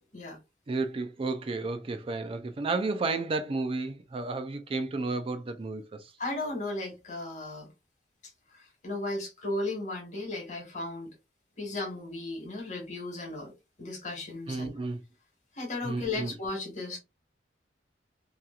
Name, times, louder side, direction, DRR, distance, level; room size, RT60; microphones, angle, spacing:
voice 1, 0.7-6.0 14.5-15.0 15.8-16.3, right 3 dB, 30° right, 0.3 m, -32 dB
voice 2, 6.2-7.7 8.8-11.1 11.6-13.5 13.8-14.7 15.6-17.0, left 2 dB, 40° left, 1.2 m, -35 dB
2.8 x 2.3 x 2.3 m
head